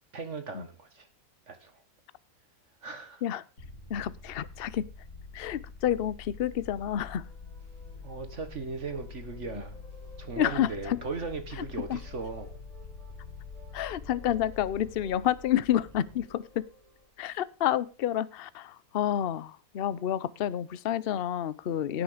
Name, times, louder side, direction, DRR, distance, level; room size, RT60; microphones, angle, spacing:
voice 1, 0.1-1.1 1.5-1.8 2.8-3.2 8.0-9.8 10.2-12.5, right 4 dB, 50° right, 8 dB, 1.7 m, -38 dB
sound 1, 3.6-16.9, left 4 dB, 90° left, 3.1 m, -46 dB
voice 2, 3.9-4.9 5.3-7.3 9.5-9.6 10.4-11.0 11.6-12.0 13.7-16.7 17.2-22.0, left 11 dB, 50° left, 18 dB, 0.7 m, -29 dB
sound 2, 7.0-17.1, right 1 dB, 25° right, 4.0 m, -55 dB
17.0 x 6.3 x 5.0 m, 0.34 s
omnidirectional pair, 1.6 m